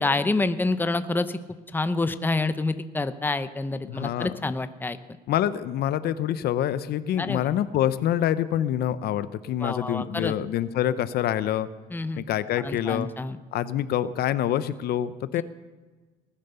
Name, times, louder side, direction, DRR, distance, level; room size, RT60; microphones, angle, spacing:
voice 1, 0.0-1.4 1.7-5.0 7.2-7.5 9.6-10.3 11.9-12.2 12.6-13.4 15.4-15.5, left 3 dB, 10° left, 11 dB, 0.8 m, -27 dB
voice 2, 3.9-4.3 5.3-11.7 12.2-13.1 13.5-15.4, left 11 dB, 70° left, 14 dB, 0.8 m, -26 dB
19.5 x 10.5 x 6.9 m, 1.3 s
cardioid pair, 110°, 17 cm